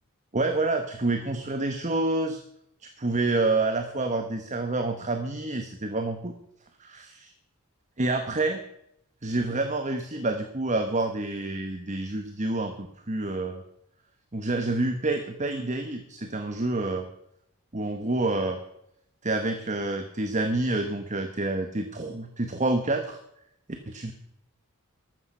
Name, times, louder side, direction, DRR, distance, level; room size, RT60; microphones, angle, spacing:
voice 1, 0.3-2.4 2.8-6.3 6.8-7.3 8.0-8.6 9.2-13.6 14.3-17.1 17.7-18.6 19.2-23.2 23.7-24.1, right 2 dB, 35° right, 7 dB, 1.1 m, -28 dB
14.0 x 12.5 x 5.6 m, 0.76 s
head